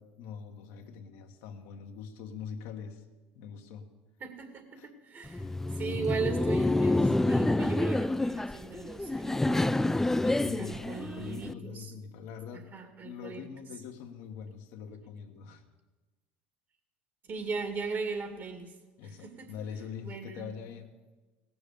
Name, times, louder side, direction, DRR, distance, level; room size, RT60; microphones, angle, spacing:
voice 1, 0.0-3.0 3.3-3.9 4.8-4.9 5.4-5.6 10.2-12.7 13.0-15.6 19.0-21.0, left 7 dB, 70° left, 4 dB, 1.3 m, -43 dB
voice 2, 4.2-9.9 10.2-11.9 12.5-13.4 17.3-18.8 19.0-19.5 20.0-20.5, right 5 dB, 40° right, 6 dB, 2.2 m, -38 dB
Laughter, 5.3-11.5, left 2 dB, 5° left, 0.3 m, -28 dB
17.5 x 7.0 x 6.9 m, 1.2 s
hypercardioid pair, 85°, 5 cm